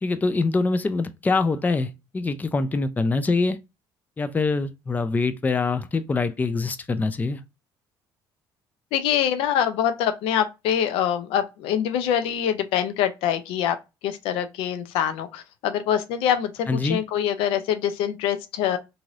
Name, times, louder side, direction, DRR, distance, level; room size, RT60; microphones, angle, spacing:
voice 1, 0.0-3.6 4.2-7.4 16.7-17.0, left 3 dB, 20° left, 0.4 m, -24 dB
voice 2, 8.9-13.8 14.0-18.8, left 9 dB, 85° left, 0.4 m, -24 dB
3.0 x 2.7 x 2.4 m
cardioid pair, 95°, 9 cm